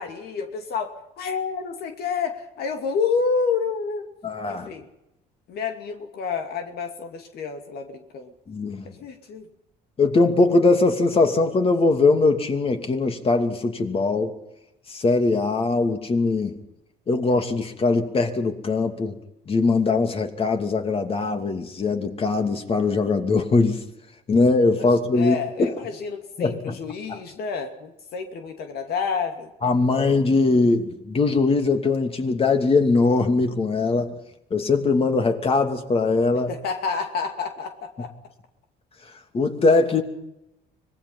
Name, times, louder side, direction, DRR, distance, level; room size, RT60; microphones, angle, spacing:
voice 1, 0.0-4.1 4.5-4.9 5.5-8.3 8.9-9.5 24.8-29.5 36.5-38.1, left 5 dB, 70° left, 5 dB, 2.5 m, -29 dB
voice 2, 4.2-4.7 8.5-8.8 10.0-14.3 14.9-16.6 17.1-19.1 19.5-23.8 24.3-25.7 26.4-26.8 29.6-34.1 34.5-36.5 39.3-40.0, left 3 dB, 35° left, 6 dB, 2.8 m, -21 dB
25.0 x 20.0 x 5.7 m, 0.87 s
cardioid pair, 110°, 17 cm